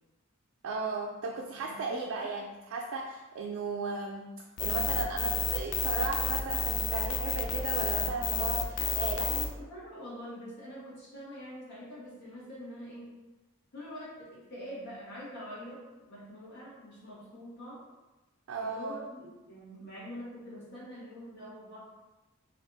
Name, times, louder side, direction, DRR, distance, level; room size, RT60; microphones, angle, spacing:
voice 1, 0.6-4.3 4.6-9.3 18.5-19.0, right 3 dB, 70° right, 0 dB, 0.3 m, -35 dB
voice 2, 1.6-2.3 8.8-13.1 13.7-17.8 18.6-21.8, equal, 55° left, -8 dB, 1.2 m, -45 dB
sound 1, 4.6-9.5, left 6 dB, 75° left, 0.4 m, -30 dB
2.6 x 2.3 x 3.8 m, 1.1 s
head